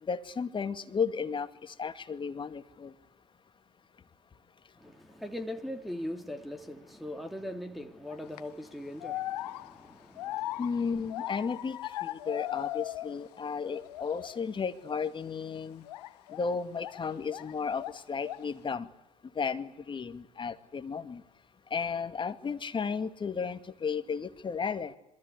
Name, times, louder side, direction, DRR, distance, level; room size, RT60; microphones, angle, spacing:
voice 1, 0.0-2.9 10.6-15.9 16.3-18.9 19.4-21.2 21.7-24.9, left 5 dB, 25° left, 2.3 m, -34 dB
voice 2, 4.8-10.6, left 1 dB, ahead, 2.7 m, -40 dB
sound 1, 8.1-8.4 9.0-13.4 13.6-14.4 14.8-15.1 15.9-17.5 17.8-18.6, left 15 dB, 70° left, 1.3 m, -39 dB
27.0 x 23.5 x 8.5 m
hypercardioid pair, 80°, 21 cm